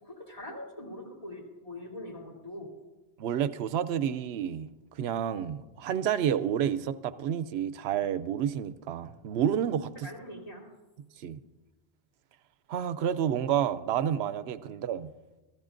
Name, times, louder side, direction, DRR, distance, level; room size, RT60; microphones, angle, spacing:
voice 1, 0.0-2.7 10.0-10.6, left 1 dB, 35° left, -2 dB, 3.1 m, -42 dB
voice 2, 3.2-4.7 5.0-10.1 11.2-11.4 12.7-15.1, right 9 dB, 80° right, 13 dB, 0.8 m, -29 dB
25.0 x 14.0 x 2.5 m, 1.1 s
omnidirectional pair, 1.1 m